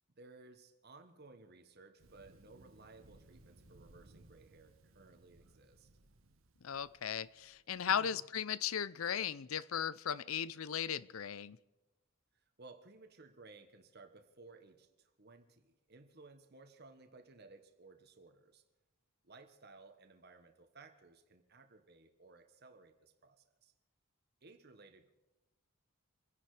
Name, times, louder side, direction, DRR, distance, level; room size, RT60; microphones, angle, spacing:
voice 1, 0.1-5.9 7.9-8.2 12.3-18.6 19.2-23.7 24.4-25.1, right 3 dB, 50° right, 1.3 m, -58 dB
Thunder, 2.0-7.8, right 2 dB, 70° right, 1.4 m, -63 dB
voice 2, 6.6-11.6, left 8 dB, 80° left, 0.6 m, -37 dB
25.5 x 10.5 x 4.9 m
head